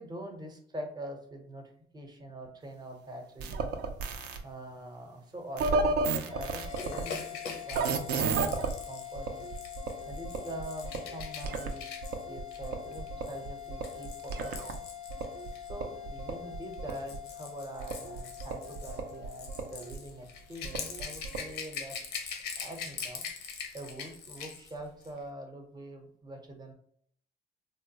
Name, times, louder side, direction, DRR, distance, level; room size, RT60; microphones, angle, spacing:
voice 1, 0.0-3.8 4.4-9.5 10.1-14.7 15.7-22.0 22.6-23.2 23.7-26.7, right 1 dB, 25° right, 3 dB, 0.7 m, -44 dB
sound 1, 3.4-4.4 5.6-7.0 7.7-8.7 9.2-11.7 12.0-14.8 15.1-17.2 17.8-20.0 20.6-21.5, right 4 dB, 70° right, 0.5 m, -34 dB
sound 2, 6.2-20.8, left 11 dB, 30° left, 0.5 m, -45 dB
Rattle / Rattle (instrument), 6.7-15.7 16.6-24.7 25.0-25.2, left 6 dB, 90° left, 0.6 m, -43 dB
3.3 x 2.2 x 2.8 m, 0.64 s
cardioid pair, 110°, 17 cm